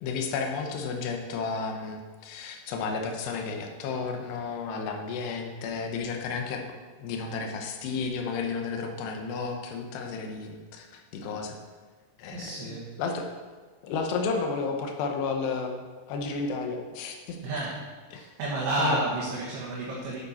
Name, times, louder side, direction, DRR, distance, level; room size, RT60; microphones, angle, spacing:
voice 1, 0.0-6.6 7.0-11.6 12.2-13.3 13.8-17.4 18.1-18.2 18.8-19.0, left 4 dB, 70° left, 3 dB, 2.8 m, -32 dB
voice 2, 12.3-12.9 17.4-17.8 18.1-20.2, right 2 dB, 65° right, -6 dB, 3.7 m, -31 dB
11.5 x 8.7 x 4.3 m, 1.4 s
omnidirectional pair, 5.8 m